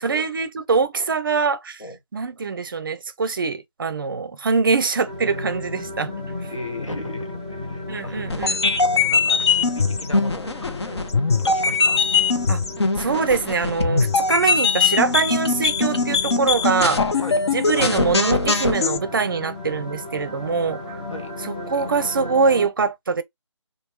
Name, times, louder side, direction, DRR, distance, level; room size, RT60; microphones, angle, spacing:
voice 1, 0.0-1.8 2.1-6.1 7.9-8.6 12.5-12.6 13.0-17.0 17.5-21.0 21.4-23.2, right 5 dB, 45° right, 0.5 m, -23 dB
sound 1, 5.1-22.7, left 2 dB, 15° left, 0.5 m, -35 dB
voice 2, 6.5-11.0 11.4-12.0 17.2-17.4 21.1-21.3, left 2 dB, 85° left, 1.2 m, -36 dB
sound 2, 8.3-19.0, left 4 dB, 60° left, 0.7 m, -21 dB
3.1 x 2.3 x 3.0 m
figure-of-eight pair, 155°, 16 cm